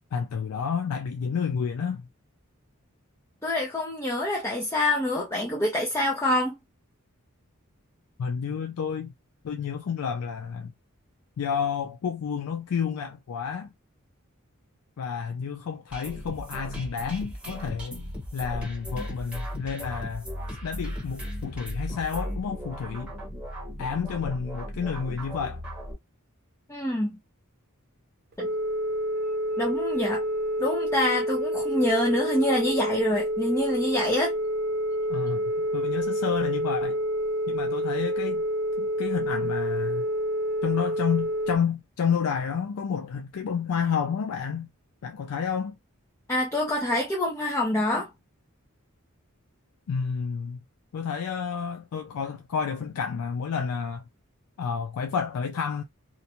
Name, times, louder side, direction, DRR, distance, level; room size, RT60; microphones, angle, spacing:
voice 1, 0.1-2.0 8.2-9.1 9.4-10.7 11.4-13.7 15.0-18.0 18.3-20.3 20.6-23.1 23.8-25.6 35.1-35.4 35.7-37.0 37.5-38.4 38.8-40.0 40.6-44.7 45.0-45.8 49.9-50.6 50.9-54.0 54.6-55.8, left 6 dB, 85° left, 0.4 m, -30 dB
voice 2, 3.4-6.6 26.7-27.2 28.4-28.5 29.6-30.2 30.6-34.4 46.3-48.1, left 1 dB, 15° left, 0.6 m, -26 dB
sound 1, 15.9-25.9, equal, 5° right, 1.0 m, -36 dB
Telephone, 28.3-41.6, equal, 45° right, 0.5 m, -28 dB
2.6 x 2.1 x 2.8 m
head